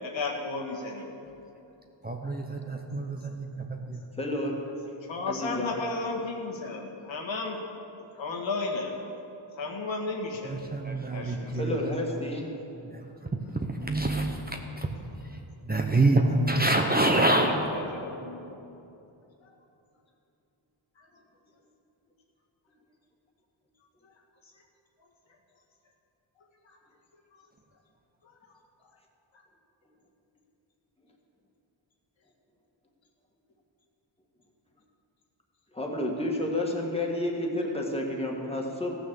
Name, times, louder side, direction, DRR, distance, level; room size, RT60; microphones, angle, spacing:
voice 1, 0.0-1.1 5.1-7.6 8.1-9.0 9.6-10.6 11.1-11.6 17.9-18.4, left 3 dB, 70° left, 0 dB, 1.8 m, -33 dB
voice 2, 2.0-4.0 10.4-12.1 12.9-18.0, right 2 dB, 20° right, 3 dB, 0.9 m, -27 dB
voice 3, 4.2-4.6 5.3-5.7 11.5-12.5 35.7-39.0, left 1 dB, 10° left, -1 dB, 1.9 m, -30 dB
15.0 x 6.4 x 7.1 m, 2.9 s
cardioid pair, 85°, 48 cm